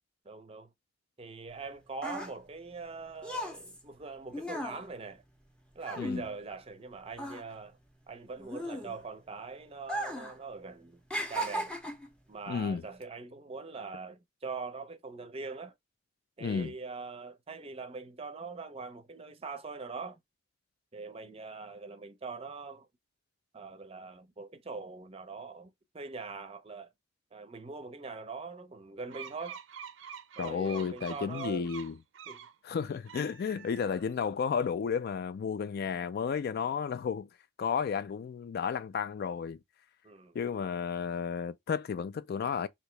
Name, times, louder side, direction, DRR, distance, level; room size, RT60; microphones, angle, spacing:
voice 1, 0.2-0.7 1.2-5.2 5.7-7.8 8.1-11.0 11.3-11.7 12.3-15.7 16.4-20.2 20.9-22.9 23.5-26.9 27.3-29.6 30.4-31.7 32.3-32.4 40.0-40.4, right 4 dB, 30° right, 0.6 m, -42 dB
sound 1, 1.5-6.9 7.1-9.3 9.8-10.4 10.7-12.1 12.8-13.0, equal, 5° left, 0.6 m, -37 dB
voice 2, 12.5-12.8 16.4-16.7 30.4-32.0 32.6-37.3 37.6-39.6 40.3-42.7, left 6 dB, 55° left, 0.3 m, -32 dB
sound 2, 29.1-32.5 33.0-34.2, right 7 dB, 85° right, 0.5 m, -46 dB
2.9 x 2.8 x 3.1 m
head